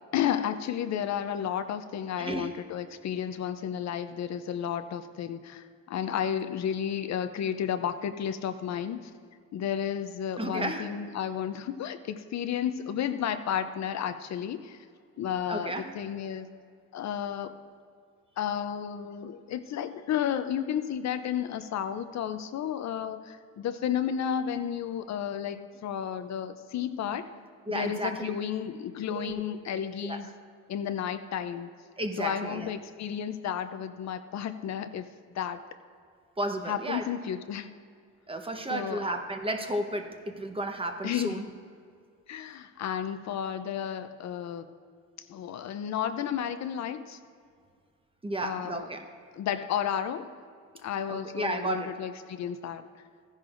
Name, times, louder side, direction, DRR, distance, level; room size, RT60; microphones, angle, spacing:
voice 1, 0.1-9.1 9.5-14.9 15.2-16.5 16.9-17.6 18.4-27.3 27.7-30.3 30.7-31.7 32.2-35.1 35.3-35.6 36.7-37.8 38.7-39.1 41.0-41.5 42.3-44.7 45.3-47.2 48.4-48.9 49.4-50.3 50.8-52.8, left 9 dB, 65° left, 10 dB, 0.6 m, -32 dB
voice 2, 2.2-2.5 10.4-10.9 15.5-15.9 27.7-28.3 29.1-29.3 30.0-30.2 32.0-32.7 36.4-37.0 38.3-41.4 48.2-49.0 51.1-51.9, right 1 dB, 20° right, 5 dB, 0.9 m, -33 dB
14.5 x 10.5 x 2.5 m, 2.2 s
cardioid pair, 95°, 30 cm